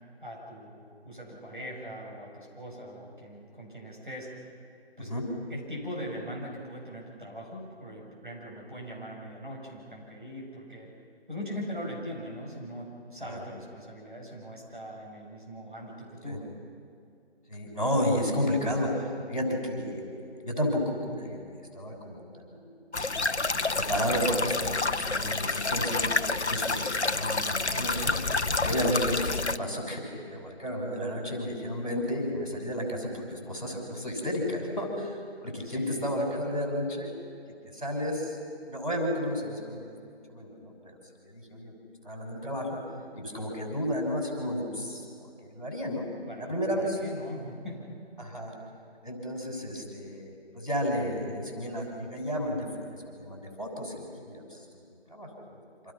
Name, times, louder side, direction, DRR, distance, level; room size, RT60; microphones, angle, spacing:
voice 1, 0.2-4.3 5.0-5.1 5.5-10.9 11.3-16.4 28.9-29.2 35.6-36.5 46.3-48.0, equal, 50° right, -3 dB, 8.0 m, -41 dB
voice 2, 17.5-20.0 20.4-21.4 21.7-22.7 23.7-26.1 26.5-28.1 28.6-37.1 37.6-38.4 38.7-40.0 40.3-41.0 41.2-41.7 42.0-42.7 43.1-46.0 46.4-47.0 48.2-48.5 49.0-54.4 55.1-55.6, equal, 35° left, 0 dB, 6.5 m, -32 dB
sound 1, 22.9-29.6, left 3 dB, 85° left, 0.9 m, -28 dB
29.5 x 26.0 x 5.9 m, 2.5 s
figure-of-eight pair, 175°, 33 cm